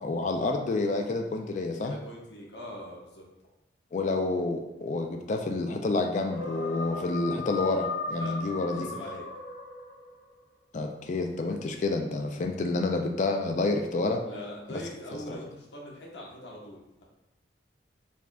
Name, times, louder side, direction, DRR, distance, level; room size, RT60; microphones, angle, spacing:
voice 1, 0.0-1.9 3.9-8.9 10.7-14.2 14.7-14.8 15.1-15.4, left 2 dB, 45° left, 4 dB, 0.3 m, -29 dB
voice 2, 1.8-3.2 8.2-8.4 8.7-9.3 14.3-17.0, equal, 75° left, -2 dB, 1.0 m, -42 dB
sound 1, 6.2-10.3, left 4 dB, 90° left, 0.7 m, -37 dB
4.7 x 3.6 x 2.3 m, 0.94 s
head